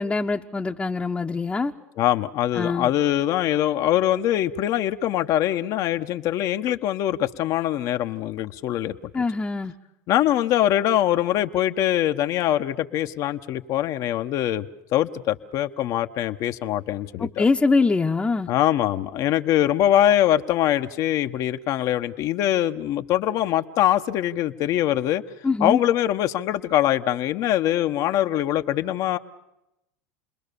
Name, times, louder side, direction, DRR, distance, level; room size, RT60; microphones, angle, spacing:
voice 1, 0.0-1.7 2.5-2.9 9.1-9.7 17.2-18.5 25.4-25.8, left 4 dB, 15° left, 1 dB, 1.1 m, -23 dB
voice 2, 2.0-9.2 10.1-14.7 14.9-17.4 18.5-25.2 25.6-29.2, left 12 dB, 55° left, 7 dB, 1.1 m, -23 dB
29.5 x 21.0 x 6.9 m, 0.86 s
hypercardioid pair, 85°, 7 cm